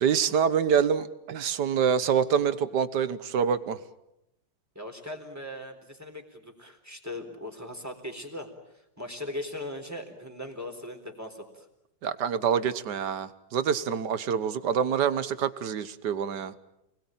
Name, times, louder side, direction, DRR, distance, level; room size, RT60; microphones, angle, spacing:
voice 1, 0.0-3.8 12.0-16.5, right 7 dB, 65° right, 14 dB, 1.7 m, -26 dB
voice 2, 4.8-11.7, left 1 dB, 10° right, 4 dB, 3.8 m, -39 dB
29.0 x 20.5 x 9.1 m, 0.87 s
omnidirectional pair, 2.0 m